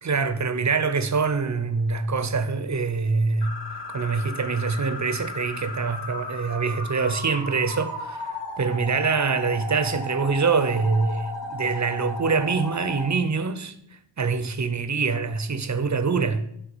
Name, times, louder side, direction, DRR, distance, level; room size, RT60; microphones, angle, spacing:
voice 1, 0.0-3.5 3.9-13.7 14.2-16.5, right 4 dB, 40° right, 0.6 m, -25 dB
Flying Car - Stop Fly, 3.4-13.1, left 1 dB, 65° left, 1.9 m, -35 dB
6.1 x 3.2 x 5.4 m
wide cardioid pair, 45°, 47 cm